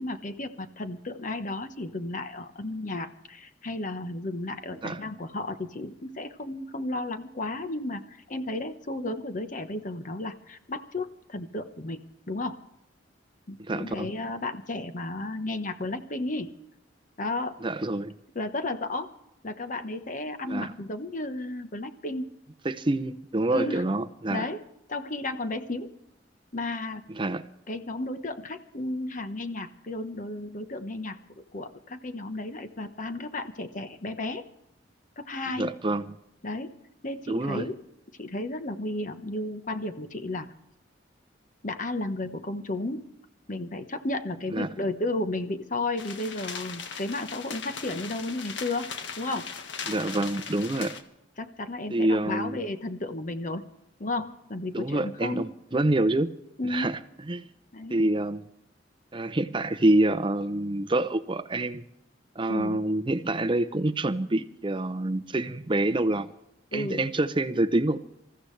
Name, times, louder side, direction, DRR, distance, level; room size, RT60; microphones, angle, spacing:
voice 1, 0.0-12.0 12.3-12.6 13.5-16.5 17.2-17.5 18.3-19.1 19.4-22.3 23.5-23.8 24.3-24.6 24.9-26.0 26.5-27.0 27.7-34.4 35.2-35.7 36.4-36.7 37.0-37.8 38.2-40.5 41.6-43.0 43.5-49.5 51.4-53.6 54.0-55.4 56.6-56.9 57.7-58.0 62.5-62.8 66.7-67.0, left 2 dB, 45° left, 8 dB, 1.1 m, -33 dB
voice 2, 13.6-14.1 17.6-18.2 20.5-20.7 22.6-24.5 27.1-27.4 35.6-36.1 37.3-37.7 44.5-44.7 49.9-51.0 51.9-52.6 54.7-56.3 56.6-57.5 57.9-58.5 59.1-61.8 62.4-66.3 66.7-68.0, right 1 dB, 25° right, 12 dB, 0.6 m, -27 dB
sound 1, 46.0-51.0, left 6 dB, 70° left, 1.6 m, -38 dB
27.0 x 14.5 x 3.3 m, 0.81 s
head